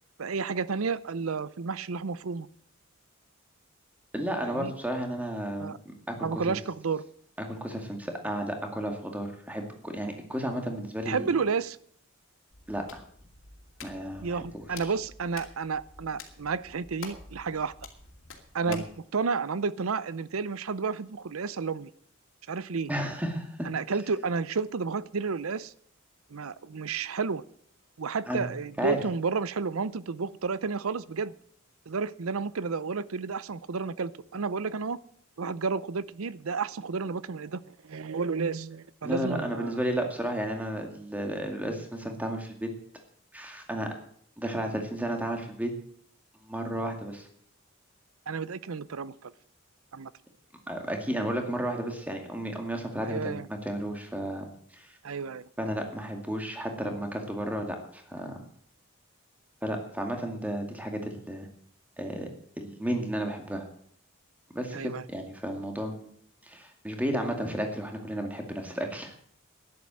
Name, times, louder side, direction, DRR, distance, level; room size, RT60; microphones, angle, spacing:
voice 1, 0.2-2.5 4.4-4.7 5.6-5.8 6.2-7.0 11.1-11.8 14.2-17.7 18.5-18.9 19.1-21.9 22.5-22.9 23.6-25.7 26.3-27.4 28.0-31.3 31.9-35.0 35.4-39.7 48.3-49.3 49.9-50.1 53.0-53.5 55.0-55.5 64.7-65.0, right 5 dB, 90° right, 18 dB, 0.6 m, -31 dB
voice 2, 4.1-6.5 7.4-11.3 12.7-13.0 13.8-14.9 18.7-18.8 22.9-23.7 28.3-28.5 28.8-29.0 39.0-42.7 43.3-43.9 44.4-45.7 46.4-47.3 50.7-54.5 54.7-54.9 55.6-58.4 59.6-61.5 62.0-62.3 62.6-63.7 64.5-66.1 66.4-69.1, equal, 5° right, 3 dB, 2.2 m, -33 dB
Hands, 12.5-19.0, left 4 dB, 65° left, 2.5 m, -48 dB
12.0 x 10.5 x 7.5 m, 0.63 s
head